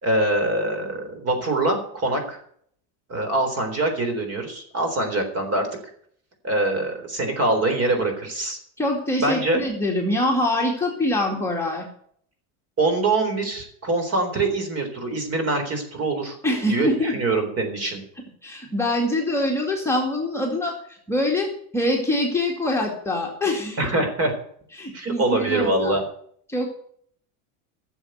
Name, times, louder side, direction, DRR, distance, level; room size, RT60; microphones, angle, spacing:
voice 1, 0.0-2.4 3.1-5.7 6.4-8.6 9.2-9.6 12.8-16.4 16.7-18.0 23.8-24.3 24.9-26.0, right 2 dB, 35° right, 6 dB, 3.9 m, -24 dB
voice 2, 8.8-11.9 16.4-17.2 18.4-20.7 21.1-23.9 24.8-26.0 26.5-26.7, left 1 dB, 5° left, -2 dB, 2.3 m, -24 dB
12.5 x 7.3 x 7.9 m, 0.62 s
supercardioid pair, 130°, 43 cm